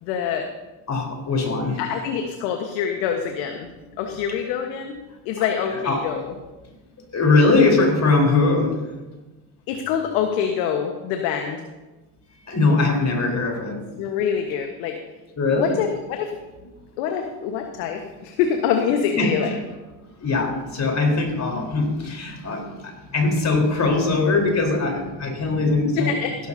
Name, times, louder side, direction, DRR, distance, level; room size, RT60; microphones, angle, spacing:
voice 1, 0.0-0.5 1.8-3.7 4.0-5.0 5.2-6.3 9.7-11.7 14.0-15.0 15.5-16.4 17.0-19.5 25.9-26.4, left 8 dB, 75° left, 4 dB, 1.4 m, -25 dB
voice 2, 0.9-1.8 5.4-5.5 5.8-6.0 7.1-8.8 12.5-13.8 15.4-15.7 19.2-19.3 20.2-26.1, left 3 dB, 35° left, 1 dB, 4.1 m, -21 dB
16.0 x 13.0 x 2.8 m, 1.1 s
supercardioid pair, 85°, 50 cm